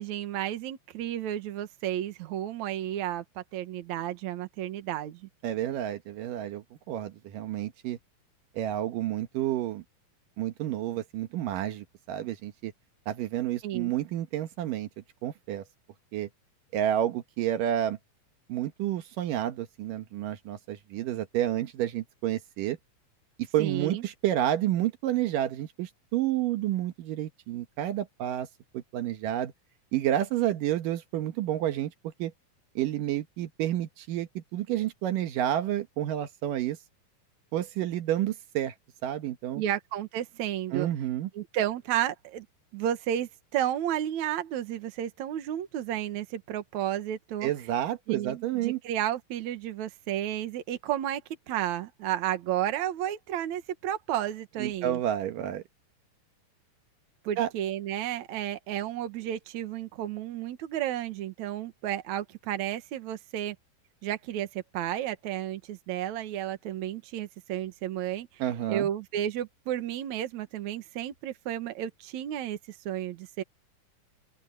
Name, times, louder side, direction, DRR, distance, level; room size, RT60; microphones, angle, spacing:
voice 1, 0.0-5.3 13.6-13.9 23.6-24.0 39.5-40.9 41.3-42.5 42.7-47.5 48.1-51.2 51.5-55.0 57.2-63.6 64.0-68.4 68.7-73.4, right 11 dB, 65° right, 2.6 m, -32 dB
voice 2, 5.4-8.0 8.6-9.8 10.4-12.7 13.1-14.9 15.2-15.6 16.1-16.3 16.7-18.0 18.5-22.8 23.5-28.5 28.7-29.5 29.9-31.9 32.2-32.3 32.8-36.8 37.5-38.7 39.0-39.6 40.7-41.3 47.4-48.8 54.6-55.6 57.4-57.5 68.4-68.9, right 12 dB, 80° right, 2.8 m, -30 dB
open air
omnidirectional pair, 3.8 m